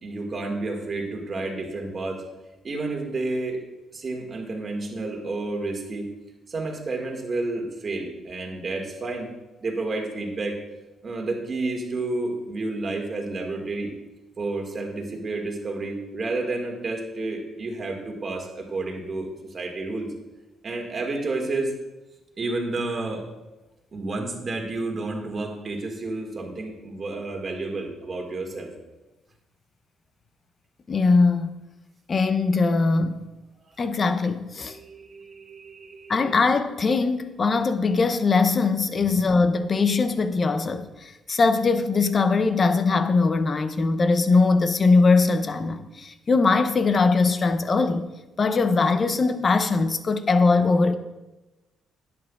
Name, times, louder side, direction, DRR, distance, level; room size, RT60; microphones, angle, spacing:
voice 1, 0.0-2.2 2.6-3.6 3.9-6.1 6.5-9.3 9.6-10.6 11.0-13.9 14.4-19.3 19.5-20.1 20.6-21.7 22.4-23.3 23.9-28.7 34.6-36.3 39.0-39.2, right 2 dB, 40° right, 1.9 m, -30 dB
voice 2, 30.9-31.5 32.1-33.2 33.8-34.8 36.1-48.1 48.4-51.0, left 4 dB, 40° left, 0.7 m, -21 dB
11.0 x 8.6 x 2.4 m
cardioid pair, 90°, 0 cm